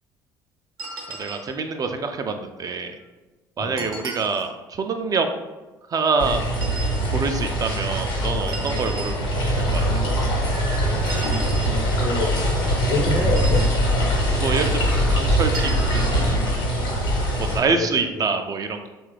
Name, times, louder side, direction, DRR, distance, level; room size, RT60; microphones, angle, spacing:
sound 1, 0.8-1.6 3.8-4.5 6.5-7.0 8.5-9.2 11.1-11.8 13.2-13.8 15.5-16.2, right 4 dB, 80° right, 0.5 m, -36 dB
voice 1, 1.1-3.0 3.6-5.3 5.9-6.4 7.1-9.8 14.4-16.5 17.4-18.9, right 4 dB, 35° right, 6 dB, 0.3 m, -26 dB
sound 2, 6.2-17.6, equal, 80° left, 1.0 m, -22 dB
voice 2, 12.0-12.3 12.8-13.6 17.4-17.9 18.1-18.3, left 2 dB, 55° left, 2 dB, 0.7 m, -27 dB
3.1 x 2.3 x 3.2 m, 1.1 s
hypercardioid pair, 55°, 11 cm